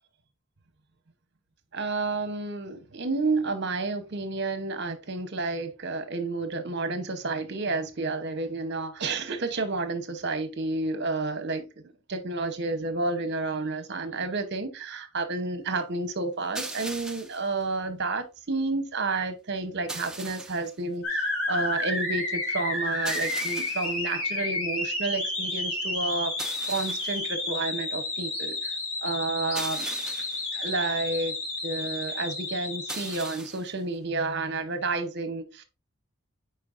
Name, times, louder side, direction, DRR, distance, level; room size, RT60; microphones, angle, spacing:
voice 1, 1.7-11.6 12.1-26.3 26.7-28.7 29.0-29.9 30.5-31.3 31.6-35.6, right 3 dB, 50° right, 0.9 m, -30 dB
sound 1, 16.5-17.5 19.9-20.7 23.0-24.0 26.4-27.2 29.5-30.5 32.9-33.7, right 2 dB, 5° right, 0.4 m, -38 dB
sound 2, 21.0-33.4, left 2 dB, 70° left, 2.5 m, -31 dB
8.4 x 4.5 x 2.5 m
head